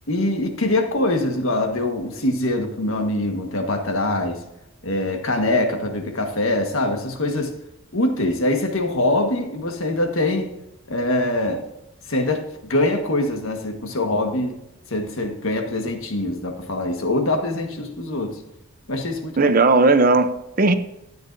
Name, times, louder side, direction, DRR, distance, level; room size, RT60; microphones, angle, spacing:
voice 1, 0.1-4.4 4.8-7.5 7.9-10.5 10.9-11.6 12.1-14.6 14.9-18.4 18.9-19.5, left 1 dB, 65° left, 4 dB, 1.5 m, -23 dB
voice 2, 19.4-20.7, right 3 dB, 40° right, 10 dB, 0.7 m, -16 dB
13.5 x 9.3 x 2.7 m, 0.88 s
head